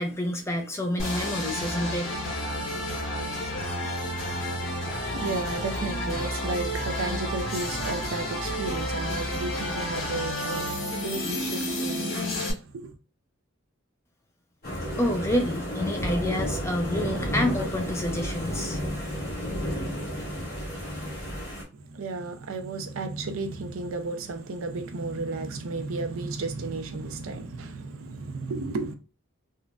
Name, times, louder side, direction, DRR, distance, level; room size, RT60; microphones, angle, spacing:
voice 1, 0.0-2.2 15.0-19.1, left 1 dB, 15° left, 0.4 m, -28 dB
sound 1, 1.0-12.5, left 1 dB, 75° left, 1.3 m, -31 dB
voice 2, 4.2-13.0 21.7-28.9, right 3 dB, 80° right, 0.5 m, -33 dB
sound 2, 14.6-21.6, equal, 45° left, 1.7 m, -31 dB
3.7 x 2.1 x 2.4 m
head